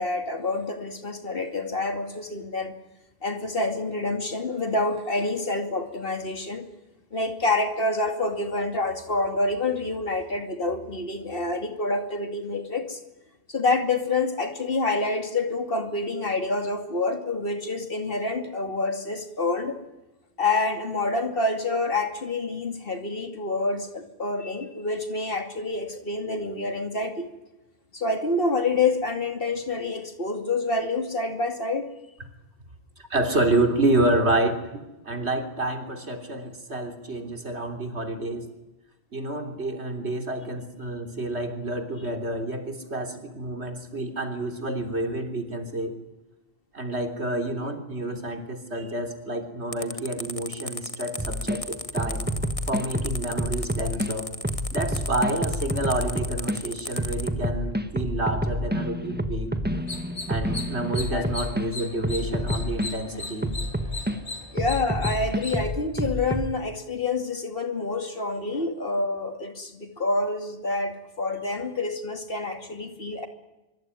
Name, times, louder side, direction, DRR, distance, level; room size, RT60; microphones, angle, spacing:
voice 1, 0.0-2.7 3.2-6.7 7.1-13.0 13.5-19.8 20.4-27.3 27.9-31.9 61.1-61.2 64.5-73.3, left 3 dB, 55° left, 6 dB, 2.7 m, -27 dB
voice 2, 33.0-34.6 35.1-38.5 39.1-46.0 46.7-52.3 52.7-54.4 54.7-59.6 60.3-63.5, right 1 dB, 75° right, 6 dB, 3.7 m, -28 dB
sound 1, 49.7-57.3, left 2 dB, 30° left, 1.6 m, -35 dB
sound 2, 51.2-51.6 52.0-54.1 54.4-56.6 57.0-61.6 62.0-62.9 63.4-64.2 64.6-66.5, equal, 10° right, 1.5 m, -28 dB
sound 3, 59.8-65.6, left 2 dB, 90° left, 3.2 m, -38 dB
24.5 x 24.0 x 9.8 m, 1.0 s
omnidirectional pair, 1.1 m